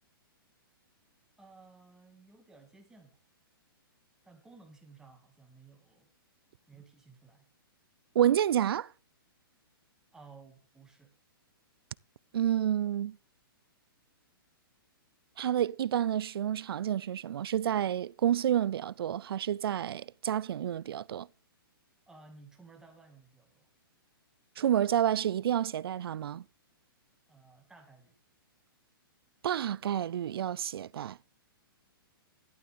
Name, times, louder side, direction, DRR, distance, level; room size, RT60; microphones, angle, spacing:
voice 1, 1.4-3.2 4.2-6.1 6.7-7.5 10.1-11.1 22.1-23.7 27.3-28.2, right 4 dB, 5° right, 2.1 m, -56 dB
voice 2, 8.2-8.9 12.3-13.2 15.4-21.3 24.6-26.4 29.4-31.2, right 10 dB, 80° right, 0.4 m, -29 dB
12.0 x 11.0 x 3.6 m
hypercardioid pair, 155°, 12 cm